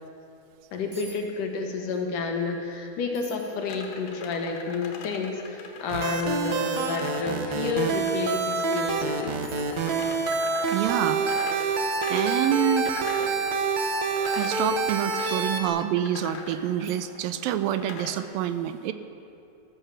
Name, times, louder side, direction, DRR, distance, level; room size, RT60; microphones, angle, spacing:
voice 1, 0.7-9.4 12.2-12.3 15.2-15.5, left 4 dB, 65° left, 2 dB, 2.9 m, -30 dB
sound 1, 0.9-1.2 1.5-2.0 2.4-2.5 3.1-3.6 4.2-4.3 5.8-5.9 6.7-7.0 8.9-9.0 9.4-9.9 11.7-12.0 13.8-14.0 15.4-15.7 16.2-16.3 16.8-17.2 17.5-17.6, right 1 dB, 20° right, 1.1 m, -48 dB
sound 2, 3.7-18.2, left 5 dB, 85° left, 3.3 m, -41 dB
sound 3, 5.9-15.7, right 4 dB, 65° right, 2.1 m, -27 dB
voice 2, 10.7-11.2 12.1-12.9 14.3-18.9, right 11 dB, 80° right, 11 dB, 2.3 m, -27 dB
14.0 x 14.0 x 7.1 m, 2.7 s
omnidirectional pair, 4.2 m